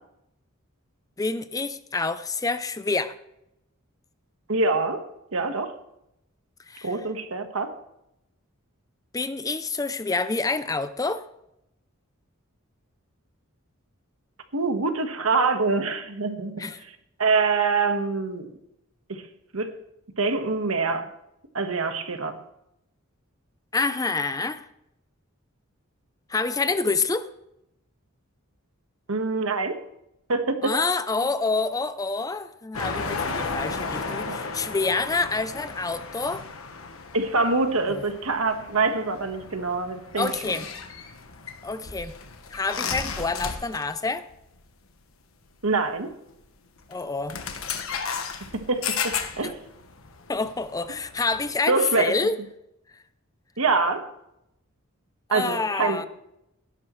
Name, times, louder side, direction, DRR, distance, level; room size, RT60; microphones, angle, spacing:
voice 1, 1.2-3.2 6.7-6.9 9.1-11.2 16.6-16.8 23.7-24.6 26.3-27.3 30.6-36.4 37.8-37.9 40.2-40.7 41.6-42.1 42.5-44.2 46.9-47.4 49.4-49.5 50.3-52.4 55.3-56.1, left 3 dB, 15° left, 12 dB, 0.5 m, -27 dB
voice 2, 4.5-5.7 6.8-7.7 14.5-16.6 17.2-18.5 19.1-19.2 19.5-19.7 20.2-21.1 21.5-22.4 29.1-29.8 30.3-30.7 37.1-40.6 45.6-46.1 48.7-49.6 51.7-52.1 53.6-54.1 55.3-56.0, right 3 dB, 75° right, 6 dB, 1.5 m, -25 dB
sound 1, 32.7-44.0 44.3-44.5 45.7-45.8 46.8-47.0 47.3-51.5, left 5 dB, 70° left, 1.3 m, -34 dB
17.5 x 10.5 x 3.2 m, 0.81 s
head